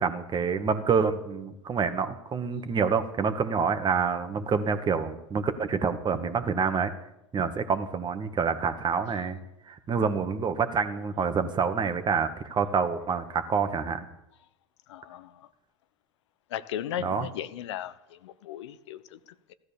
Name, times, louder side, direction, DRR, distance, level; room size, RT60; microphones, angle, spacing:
voice 1, 0.0-6.9 7.3-9.4 9.7-14.0 17.0-17.3, right 6 dB, 30° right, 1.8 m, -27 dB
voice 2, 14.9-15.5 16.5-19.5, left 11 dB, 70° left, 0.9 m, -37 dB
15.5 x 13.0 x 7.1 m
hypercardioid pair, 85°, 15 cm